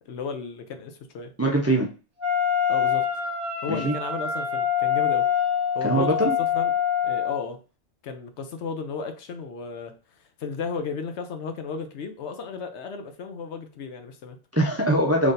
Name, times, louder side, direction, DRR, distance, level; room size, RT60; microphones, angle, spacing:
voice 1, 0.1-1.3 2.7-3.1 3.6-5.3 5.7-6.7 7.0-7.6 8.0-9.9 10.4-14.4, left 5 dB, 70° left, 7 dB, 0.9 m, -34 dB
voice 2, 1.4-1.9 3.7-4.0 5.8-6.4 14.5-15.3, right 1 dB, 20° right, 0 dB, 0.4 m, -22 dB
Wind instrument woodwind instrument, 2.2-7.4, left 8 dB, 40° right, 1.2 m, -25 dB
3.9 x 3.2 x 2.6 m, 0.34 s
omnidirectional pair, 1.3 m